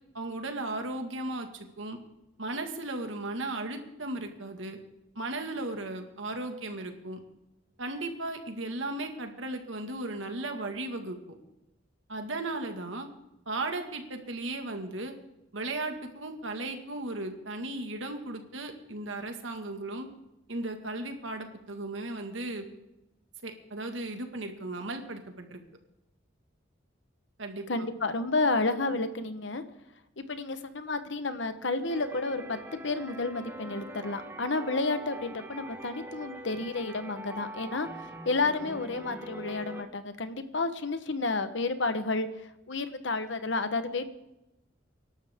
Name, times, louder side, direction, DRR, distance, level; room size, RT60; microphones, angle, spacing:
voice 1, 0.1-2.0 2.4-4.8 5.2-7.2 7.8-11.2 12.1-13.1 13.5-15.1 15.5-20.1 20.5-22.7 23.4-25.6 27.4-27.9, right 2 dB, 75° right, 5 dB, 1.9 m, -36 dB
voice 2, 27.7-29.6 30.2-37.9 38.2-42.3 42.7-44.1, left 3 dB, 70° left, 10 dB, 1.2 m, -31 dB
sound 1, 31.9-39.8, right 1 dB, 10° right, 1.1 m, -43 dB
25.0 x 12.0 x 3.7 m, 0.93 s
head